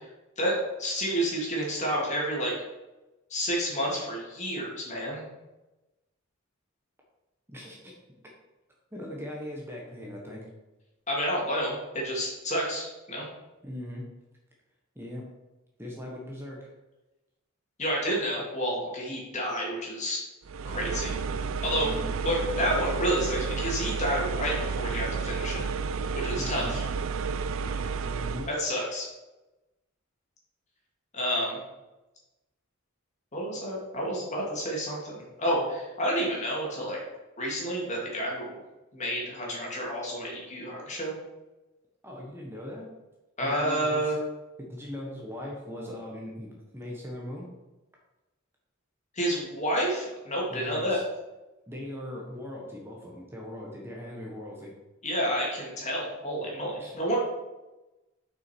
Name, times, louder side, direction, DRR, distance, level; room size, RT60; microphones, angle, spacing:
voice 1, 0.4-2.5 3.3-5.2 11.1-13.2 17.8-20.2 20.6-21.2 21.6-21.9 22.2-25.7 26.1-26.8 28.5-29.1 31.1-31.6 33.3-37.0 37.4-38.6 38.9-41.1 43.4-44.2 49.1-51.0 55.0-57.2, equal, 35° left, -3 dB, 2.6 m, -30 dB
voice 2, 7.5-7.9 8.9-10.5 13.6-14.1 14.9-15.2 15.8-16.7 20.6-20.8 21.8-22.1 26.4-26.8 28.0-28.5 42.0-42.9 43.4-44.1 44.6-47.5 50.5-51.0 51.7-54.7 56.8-57.0, left 1 dB, 10° right, -2 dB, 1.2 m, -40 dB
sound 1, 20.5-28.5, right 5 dB, 80° right, 0.5 m, -31 dB
7.4 x 6.0 x 4.6 m, 1.1 s
head